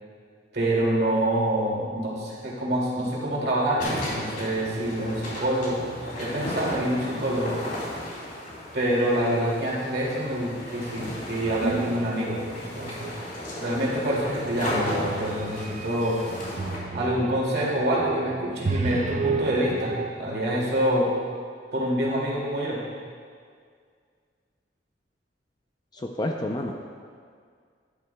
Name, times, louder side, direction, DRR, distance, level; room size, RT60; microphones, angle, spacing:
voice 1, 0.5-5.9 6.2-7.6 8.7-13.1 13.6-16.2 16.9-21.1 21.7-22.8, right 1 dB, 65° right, -4 dB, 2.3 m, -26 dB
sound 1, 3.8-16.8, left 1 dB, 50° left, 2.7 m, -35 dB
sound 2, 11.4-12.4 12.8-13.4 14.1-20.1, right 4 dB, 40° right, 0.4 m, -33 dB
voice 2, 25.9-26.7, left 1 dB, 25° left, 2 dB, 0.4 m, -29 dB
12.0 x 11.0 x 2.2 m, 2.1 s
head